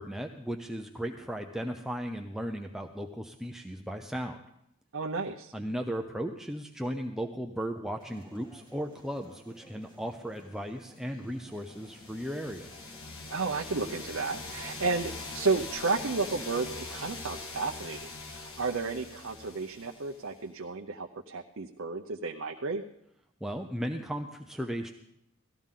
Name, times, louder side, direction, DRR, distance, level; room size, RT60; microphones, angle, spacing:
voice 1, 0.0-4.4 5.5-12.7 23.4-24.9, equal, ahead, 3 dB, 0.6 m, -36 dB
voice 2, 4.9-5.5 13.3-22.8, right 4 dB, 60° right, 2 dB, 0.7 m, -32 dB
sound 1, 8.0-15.3, equal, 20° left, 2.7 m, -54 dB
sound 2, 11.7-20.4, left 3 dB, 70° left, 1.5 m, -42 dB
17.5 x 14.0 x 3.7 m, 0.78 s
head